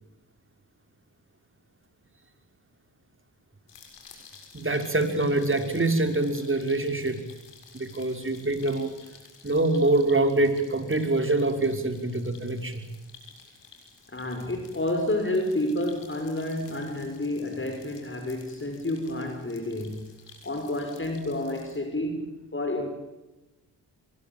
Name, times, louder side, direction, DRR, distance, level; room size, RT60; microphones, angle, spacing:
sound 1, 3.7-21.8, left 5 dB, 85° left, 7.0 m, -52 dB
voice 1, 4.5-7.2 7.7-8.9 9.4-12.8, right 2 dB, 30° right, 7 dB, 5.8 m, -25 dB
voice 2, 14.1-20.1 20.4-22.9, left 1 dB, 30° left, 5 dB, 6.1 m, -30 dB
25.0 x 22.5 x 9.0 m, 1.1 s
supercardioid pair, 45°, 41 cm